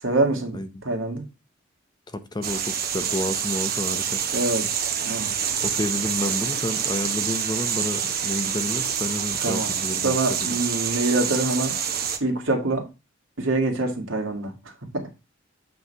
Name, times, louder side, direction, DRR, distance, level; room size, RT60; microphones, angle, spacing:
voice 1, 0.0-1.2 4.3-4.8 5.0-5.3 9.4-9.7 10.0-11.8 12.2-12.9 13.4-14.5 14.9-15.2, right 2 dB, 75° right, 1.9 m, -25 dB
voice 2, 2.1-4.2 5.6-10.5, left 1 dB, 20° left, 0.7 m, -30 dB
sound 1, 2.4-12.2, right 8 dB, 50° right, 1.1 m, -27 dB
8.2 x 3.3 x 5.4 m
head